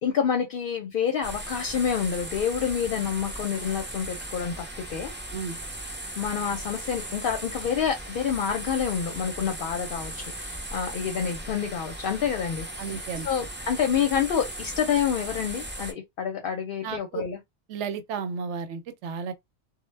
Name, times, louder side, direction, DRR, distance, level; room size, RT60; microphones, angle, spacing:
voice 1, 0.0-5.1 6.2-13.0 13.2-17.4, left 7 dB, 60° left, 0.6 m, -28 dB
sound 1, 1.2-15.9, right 1 dB, 20° right, 0.3 m, -37 dB
voice 2, 12.8-13.3 16.8-17.2 17.7-19.3, right 6 dB, 85° right, 0.9 m, -33 dB
2.0 x 2.0 x 3.2 m
omnidirectional pair, 1.2 m